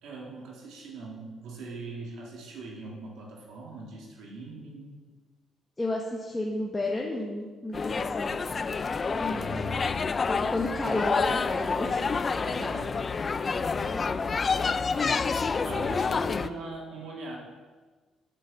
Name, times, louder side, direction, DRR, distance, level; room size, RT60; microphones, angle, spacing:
voice 1, 0.0-5.0 9.3-10.3 12.4-13.2 13.7-14.4 15.6-17.4, right 2 dB, 90° right, -2 dB, 1.8 m, -41 dB
voice 2, 5.8-8.7 9.2-9.4 10.3-12.0, left 2 dB, 15° left, -2 dB, 1.1 m, -32 dB
sound 1, 7.7-16.5, left 4 dB, 35° left, 0.3 m, -28 dB
6.4 x 6.3 x 7.1 m, 1.4 s
cardioid pair, 90°, 0 cm